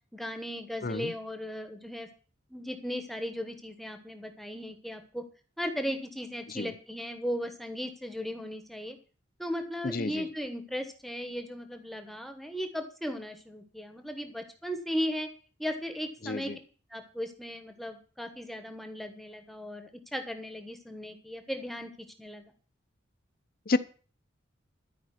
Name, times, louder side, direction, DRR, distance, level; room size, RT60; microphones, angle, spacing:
voice 1, 0.1-2.1 2.5-5.2 5.6-9.0 9.4-15.3 15.6-16.5 16.9-22.4, equal, ahead, 1.1 m, -36 dB
voice 2, 0.8-1.1 6.5-6.7 9.8-10.2 16.2-16.5 23.7-23.8, left 3 dB, 45° left, 0.7 m, -30 dB
13.0 x 5.3 x 9.2 m
head